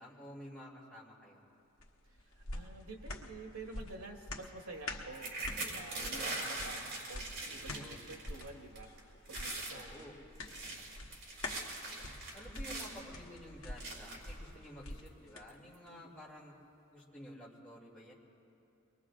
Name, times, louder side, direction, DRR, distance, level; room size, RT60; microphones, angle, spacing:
voice 1, 0.0-1.4 6.3-6.7 7.5-8.1 9.7-10.1 12.3-16.5 16.9-18.1, equal, 5° left, -8 dB, 2.6 m, -52 dB
sound 1, 1.8-15.5 15.9-16.0, left 2 dB, 60° left, 1.2 m, -47 dB
voice 2, 2.4-10.1 10.6-10.8 15.9-16.2, right 2 dB, 85° right, 1 dB, 1.6 m, -50 dB
sound 2, 5.1-8.5 8.8-9.0 9.3-9.8 10.3-13.0 13.8-14.3 15.1-15.2 15.5-15.7, right 2 dB, 55° right, 3.4 m, -41 dB
24.5 x 21.5 x 2.5 m, 2.7 s
head